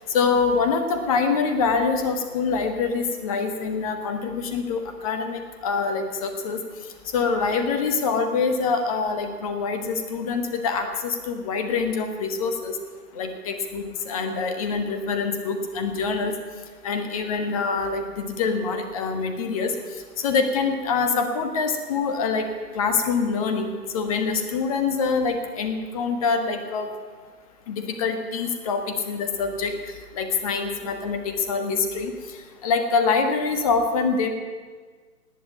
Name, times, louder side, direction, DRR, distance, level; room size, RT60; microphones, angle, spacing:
voice 1, 0.1-6.6 7.1-12.7 13.2-16.3 16.8-19.7 20.2-22.5 22.7-26.9 27.7-29.7 30.1-32.1 32.6-34.3, left 5 dB, 20° left, 7 dB, 1.3 m, -25 dB
19.0 x 7.9 x 9.2 m, 1.5 s
figure-of-eight pair, 135°, 48 cm